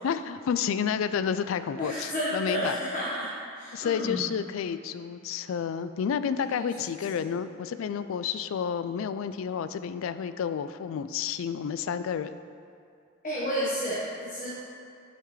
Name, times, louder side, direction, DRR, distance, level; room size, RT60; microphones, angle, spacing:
voice 1, 0.0-2.8 3.7-12.4, left 7 dB, 80° left, 12 dB, 0.3 m, -30 dB
voice 2, 1.8-3.3 3.5-4.2 6.4-6.6 7.1-7.2 13.2-14.6, equal, 40° left, -9 dB, 1.3 m, -31 dB
8.7 x 5.8 x 3.2 m, 2.5 s
head